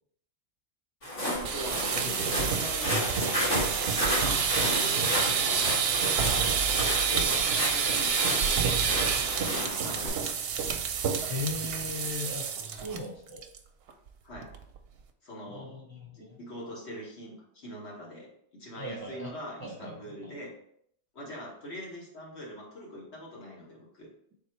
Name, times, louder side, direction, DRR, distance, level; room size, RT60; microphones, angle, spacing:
Walk footsteps, 1.0-10.1, equal, 85° left, 2.0 m, -32 dB
voice 1, 1.2-3.0 4.2-5.7 6.4-10.4 14.2-14.5 15.2-15.7 16.1-20.5 21.1-24.1, equal, 65° left, -3 dB, 1.6 m, -43 dB
sound 1, 1.3-13.0 13.3-13.6 13.9-14.0 14.4-14.8, right 6 dB, 65° right, 0.7 m, -28 dB
voice 2, 1.7-2.5 11.3-13.4 15.5-16.4 18.8-19.3 19.6-20.3, left 2 dB, 25° right, -2 dB, 0.6 m, -38 dB
3.8 x 3.0 x 4.3 m, 0.68 s
omnidirectional pair, 1.2 m